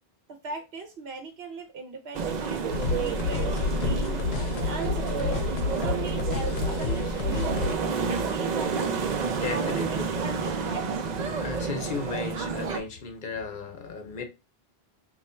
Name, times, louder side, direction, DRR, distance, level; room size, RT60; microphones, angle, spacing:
voice 1, 0.4-8.9 9.5-10.8, right 4 dB, 75° right, 1.0 m, -38 dB
sound 1, 2.1-12.8, right 5 dB, 55° right, 0.5 m, -30 dB
sound 2, 2.7-7.8, left 5 dB, 85° left, 0.8 m, -29 dB
voice 2, 9.2-10.0 11.3-14.2, left 5 dB, 55° left, 0.9 m, -35 dB
3.1 x 2.4 x 4.3 m
omnidirectional pair, 1.0 m